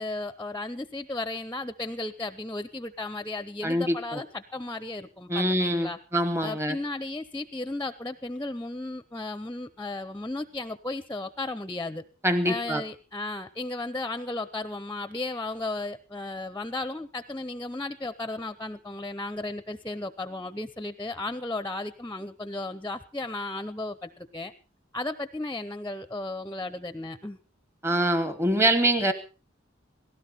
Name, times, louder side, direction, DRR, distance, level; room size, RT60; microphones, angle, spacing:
voice 1, 0.0-6.0 6.4-12.0 12.5-24.5 24.9-27.4, left 2 dB, 10° left, 12 dB, 0.7 m, -34 dB
voice 2, 3.6-4.2 5.3-6.8 12.2-12.8 27.8-29.1, right 1 dB, 15° right, 10 dB, 1.1 m, -24 dB
18.0 x 16.5 x 4.3 m, 0.36 s
head